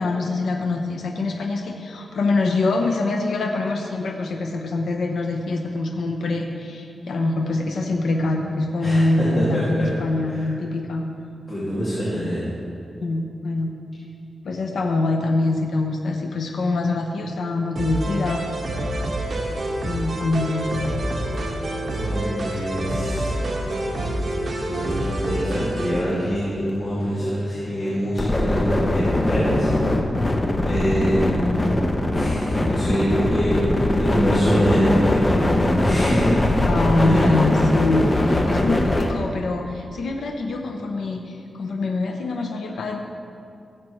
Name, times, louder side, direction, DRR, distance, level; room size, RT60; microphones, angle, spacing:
voice 1, 0.0-11.0 13.0-13.7 14.4-18.4 19.8-20.7 36.7-43.0, left 2 dB, 85° left, 2 dB, 0.8 m, -24 dB
voice 2, 8.8-9.7 10.3-10.4 11.5-12.5 21.8-23.3 24.7-29.7 30.6-31.6 32.1-36.7 37.0-37.3, equal, 40° left, -11 dB, 2.4 m, -25 dB
sound 1, 17.8-26.0, right 1 dB, 50° right, 1.5 m, -27 dB
sound 2, 20.3-39.2, left 1 dB, 20° left, 0.8 m, -23 dB
16.0 x 7.6 x 3.2 m, 2.5 s
wide cardioid pair, 125°, 0 cm